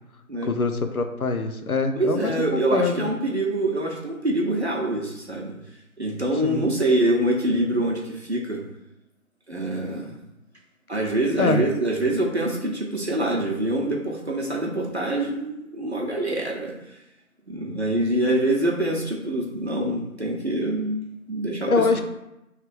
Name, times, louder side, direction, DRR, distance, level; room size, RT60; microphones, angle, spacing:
voice 1, 0.4-3.1 6.4-6.7 11.4-11.6 21.7-22.0, left 3 dB, 80° left, 8 dB, 0.8 m, -24 dB
voice 2, 2.0-5.5 6.0-8.6 9.5-10.2 10.9-17.0 17.5-21.0 21.3-22.0, right 1 dB, 50° right, 0 dB, 0.9 m, -25 dB
3.3 x 3.3 x 4.7 m, 0.89 s
figure-of-eight pair, 175°, 43 cm